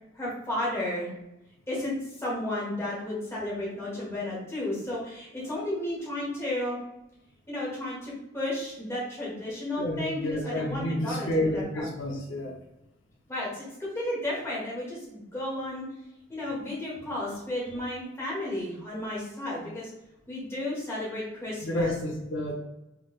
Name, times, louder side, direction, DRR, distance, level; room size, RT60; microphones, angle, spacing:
voice 1, 0.2-1.1 1.7-6.8 7.5-11.9 13.3-15.8 16.3-19.9 20.3-21.9, left 1 dB, 15° left, -6 dB, 1.2 m, -33 dB
voice 2, 9.8-12.6 21.6-22.5, left 1 dB, 80° left, 0 dB, 0.7 m, -30 dB
3.7 x 3.2 x 2.3 m, 0.89 s
head